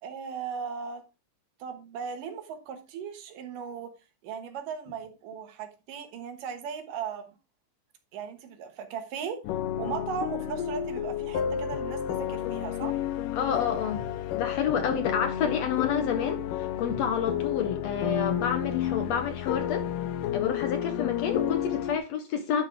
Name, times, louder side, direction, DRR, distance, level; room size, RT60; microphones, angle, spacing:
voice 1, 0.0-1.0 1.6-3.9 4.2-7.3 8.1-9.4 9.8-13.0, right 7 dB, 90° right, 2.9 m, -37 dB
sound 1, 9.4-22.0, left 10 dB, 85° left, 2.3 m, -31 dB
voice 2, 13.3-14.1 14.3-19.9 20.3-22.7, left 7 dB, 70° left, 1.7 m, -29 dB
10.5 x 5.3 x 3.4 m
omnidirectional pair, 3.7 m